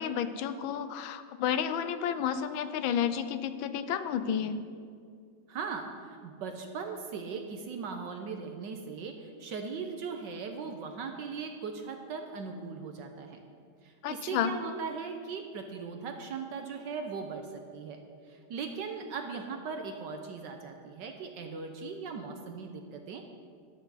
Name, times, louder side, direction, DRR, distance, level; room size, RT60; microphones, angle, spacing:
voice 1, 0.0-4.6 14.0-14.5, left 8 dB, 85° left, 11 dB, 1.5 m, -31 dB
voice 2, 5.5-13.4 13.8-18.0 18.3-23.3, right 5 dB, 70° right, 5 dB, 1.4 m, -39 dB
20.0 x 8.2 x 4.1 m, 2.2 s
omnidirectional pair, 2.1 m